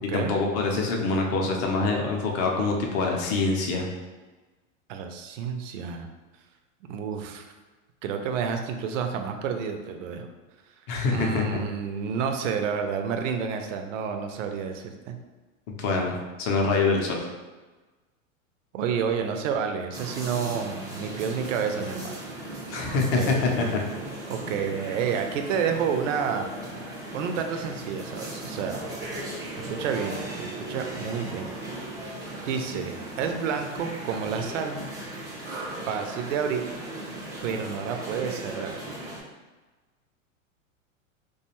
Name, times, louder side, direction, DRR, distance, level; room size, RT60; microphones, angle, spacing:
voice 1, 0.0-3.9 10.9-11.4 15.8-17.3 22.7-23.7, left 3 dB, 40° left, 1 dB, 0.5 m, -25 dB
voice 2, 4.9-6.1 6.8-7.5 8.0-10.3 11.1-15.2 18.7-22.2 22.9-23.7 24.3-26.5 27.1-28.9 29.5-31.5 32.4-34.8 35.5-36.7 37.4-38.8, right 6 dB, 65° right, 5 dB, 0.5 m, -30 dB
sound 1, 19.9-39.2, right 1 dB, 10° right, 0.3 m, -37 dB
2.4 x 2.3 x 2.9 m, 1.2 s
hypercardioid pair, 105°, 41 cm